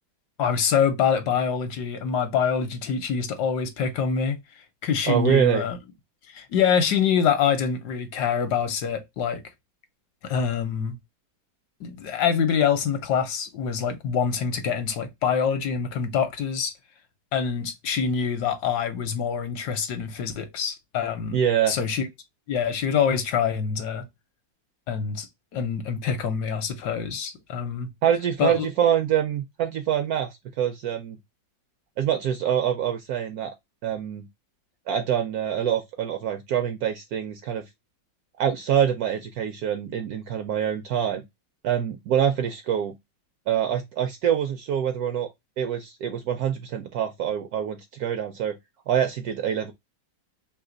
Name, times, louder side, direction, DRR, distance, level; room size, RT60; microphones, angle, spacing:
voice 1, 0.4-4.4 4.8-5.8 6.3-9.4 10.2-11.0 11.8-16.7 17.3-21.4 21.7-22.1 22.5-24.1 24.9-25.3 25.5-27.9 28.4-28.7, left 7 dB, 70° left, 1.2 m, -25 dB
voice 2, 5.1-5.6 21.3-21.7 28.0-31.2 32.0-33.5 33.8-34.3 34.9-37.6 38.4-41.2 41.6-42.9 43.5-45.3 45.6-48.6 48.9-49.7, right 9 dB, 75° right, 0.9 m, -25 dB
3.2 x 2.8 x 3.7 m
omnidirectional pair, 2.0 m